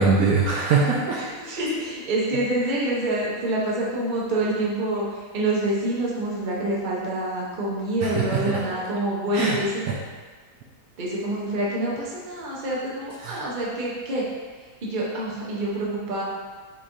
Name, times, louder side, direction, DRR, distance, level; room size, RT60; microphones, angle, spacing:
voice 1, 0.0-1.2 8.0-8.7 9.3-9.6 9.9-10.0 13.2-13.4, right 4 dB, 70° right, -3 dB, 1.0 m, -22 dB
voice 2, 1.2-9.7 11.0-14.2 14.8-16.2, right 1 dB, 40° right, -5 dB, 0.8 m, -27 dB
5.9 x 3.3 x 2.7 m, 1.4 s
omnidirectional pair, 1.7 m